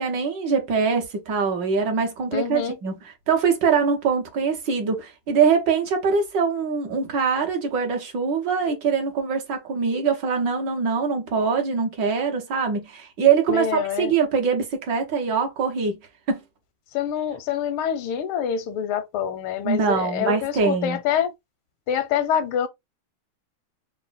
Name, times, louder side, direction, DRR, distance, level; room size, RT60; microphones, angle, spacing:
voice 1, 0.0-16.0 16.3-16.4 19.6-21.0, right 5 dB, 65° right, 1.6 m, -23 dB
voice 2, 2.3-2.7 13.5-14.1 16.9-21.3 21.9-22.7, left 8 dB, 90° left, 1.6 m, -26 dB
4.2 x 2.1 x 4.0 m
omnidirectional pair, 2.3 m